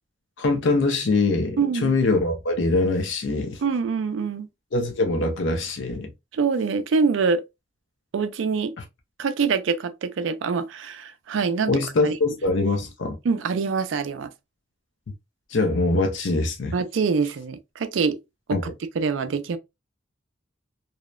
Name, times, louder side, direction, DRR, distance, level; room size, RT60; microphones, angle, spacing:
voice 1, 0.4-3.6 4.7-6.1 8.8-8.9 11.7-13.2 15.5-16.8 18.5-18.6, left 3 dB, 80° left, 0.6 m, -23 dB
voice 2, 1.6-2.0 3.6-4.5 6.3-7.4 8.1-8.7 9.2-12.1 13.2-14.3 16.7-18.2 18.5-18.6 19.0-19.6, right 5 dB, 85° right, 0.4 m, -25 dB
2.8 x 2.0 x 2.2 m
head